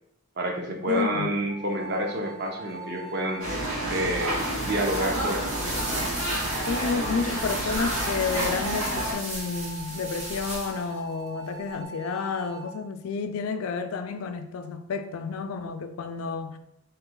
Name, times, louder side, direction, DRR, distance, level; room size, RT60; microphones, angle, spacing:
voice 1, 0.4-3.5 3.9-6.1, right 1 dB, 50° right, 0.6 m, -29 dB
voice 2, 0.9-1.3 6.7-16.6, left 5 dB, 80° left, 0.4 m, -30 dB
sound 1, 1.5-12.7, right 4 dB, ahead, 0.5 m, -42 dB
sound 2, 3.4-9.1, right 1 dB, 85° right, 1.2 m, -30 dB
sound 3, 4.1-11.0, right 1 dB, 35° right, 1.0 m, -36 dB
3.1 x 2.8 x 3.7 m
head